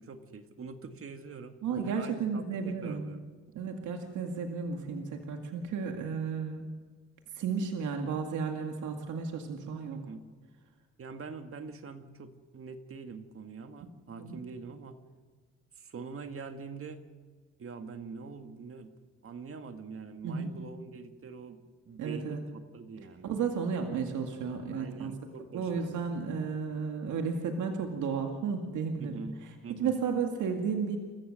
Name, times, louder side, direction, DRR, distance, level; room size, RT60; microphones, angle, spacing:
voice 1, 0.0-1.6 1.8-3.2 10.0-10.2 11.0-15.0 15.8-17.0 17.6-18.9 19.2-23.3 24.7-26.0 29.0-30.0, right 5 dB, 45° right, 7 dB, 2.1 m, -44 dB
voice 2, 1.6-3.1 3.5-6.7 7.3-10.1 14.2-14.5 20.2-20.6 22.0-22.4 23.2-25.1 25.5-31.0, right 5 dB, 75° right, 4 dB, 2.2 m, -33 dB
29.5 x 15.0 x 6.6 m, 1.5 s
cardioid pair, 90°, 30 cm